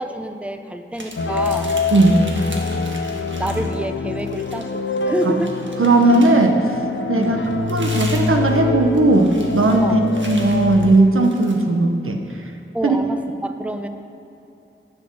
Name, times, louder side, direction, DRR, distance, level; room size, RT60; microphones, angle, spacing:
voice 1, 0.0-1.8 3.3-5.6 7.2-7.5 9.8-10.0 12.7-13.9, equal, 5° right, 7 dB, 0.6 m, -27 dB
sound 1, 0.9-3.8 4.2-6.5 7.2-11.6, right 1 dB, 65° right, 1.5 m, -38 dB
sound 2, 1.2-11.0, left 3 dB, 70° left, 0.6 m, -25 dB
voice 2, 1.9-2.2 5.8-6.6 7.1-7.4 7.7-9.8 10.3-12.2 12.8-13.0, right 2 dB, 85° right, 4 dB, 1.0 m, -16 dB
11.0 x 7.9 x 6.1 m, 2.8 s
wide cardioid pair, 70°, 21 cm